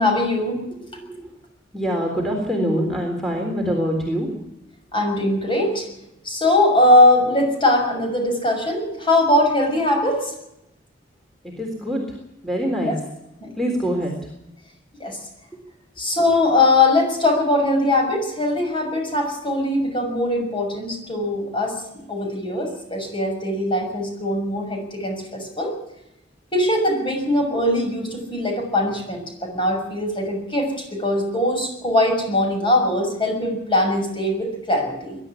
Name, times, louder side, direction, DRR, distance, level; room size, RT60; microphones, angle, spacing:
voice 1, 0.0-0.6 4.9-5.9 6.2-10.3 12.9-13.0 13.4-13.5 15.0-15.2 16.0-25.7 26.5-35.2, left 1 dB, 25° left, 2 dB, 6.5 m, -21 dB
voice 2, 0.7-1.4 1.7-4.3 11.4-12.2 12.4-12.9 13.5-14.3, equal, ahead, 0 dB, 3.8 m, -25 dB
22.0 x 12.0 x 9.8 m, 0.85 s
head